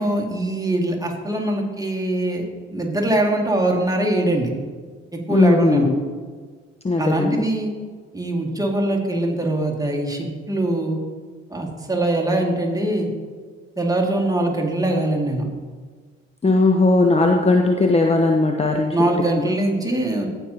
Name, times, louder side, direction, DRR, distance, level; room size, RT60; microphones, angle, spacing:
voice 1, 0.0-2.4 2.7-4.5 5.1-5.9 7.0-7.7 8.1-11.0 11.5-13.1 13.8-15.4 18.9-20.3, right 1 dB, 10° right, -1 dB, 2.1 m, -22 dB
voice 2, 5.3-6.0 6.8-7.4 16.4-18.9, left 2 dB, 20° left, 3 dB, 0.8 m, -18 dB
16.5 x 5.5 x 2.8 m, 1.5 s
hypercardioid pair, 45°, 33 cm